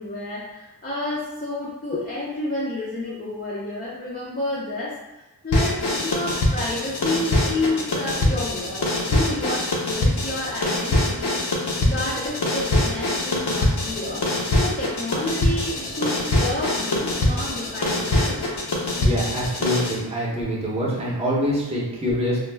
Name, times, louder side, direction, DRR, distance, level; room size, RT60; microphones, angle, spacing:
voice 1, 0.0-11.4 11.8-14.3 14.5-18.4, left 2 dB, 25° left, -6 dB, 0.5 m, -30 dB
sound 1, 5.5-20.0, left 1 dB, 65° left, 0.6 m, -23 dB
voice 2, 19.0-22.4, equal, 15° right, -5 dB, 0.7 m, -25 dB
2.3 x 2.1 x 3.3 m, 1.0 s
wide cardioid pair, 45°, 42 cm